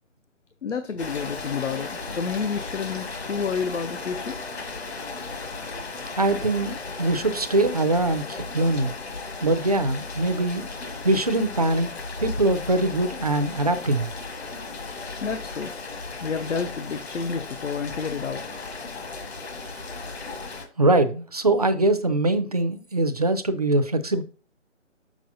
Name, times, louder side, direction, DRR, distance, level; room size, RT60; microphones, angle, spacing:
voice 1, 0.6-4.4 4.7-4.8 15.2-15.8 16.2-18.4, left 5 dB, 75° left, 0.7 m, -30 dB
Rain, 1.0-20.6, left 3 dB, 60° left, 1.3 m, -35 dB
voice 2, 6.2-8.9 9.4-10.7 11.0-11.9 12.2-14.1 20.8-24.2, right 2 dB, 35° right, 0.4 m, -22 dB
6.6 x 6.1 x 2.6 m
figure-of-eight pair, 145°, 37 cm